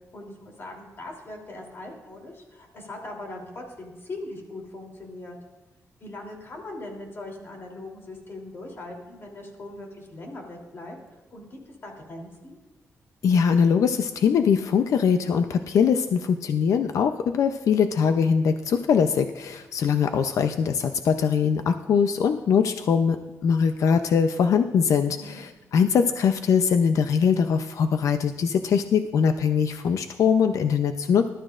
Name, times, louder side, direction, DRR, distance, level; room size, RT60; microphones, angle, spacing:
voice 1, 0.1-5.4 6.0-12.6 25.2-25.4, left 2 dB, 45° left, 0 dB, 3.1 m, -40 dB
voice 2, 13.2-23.2 23.4-31.3, left 6 dB, 80° left, 8 dB, 0.5 m, -22 dB
20.5 x 12.5 x 2.5 m, 1.2 s
wide cardioid pair, 125°, 5 cm